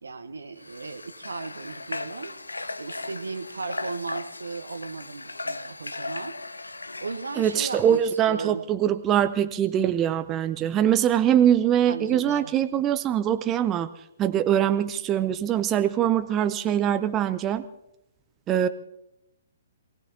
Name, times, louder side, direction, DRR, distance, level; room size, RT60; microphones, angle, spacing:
voice 1, 0.0-6.4 7.0-8.6 11.9-12.5, right 4 dB, 70° right, 12 dB, 1.0 m, -36 dB
Water / Water tap faucet, 0.6-8.1, left 2 dB, 75° left, 0.6 m, -37 dB
voice 2, 7.4-13.9 14.2-17.7 18.5-18.7, right 10 dB, 20° right, 10 dB, 0.6 m, -23 dB
27.0 x 17.5 x 2.8 m, 0.86 s
figure-of-eight pair, 120°, 0 cm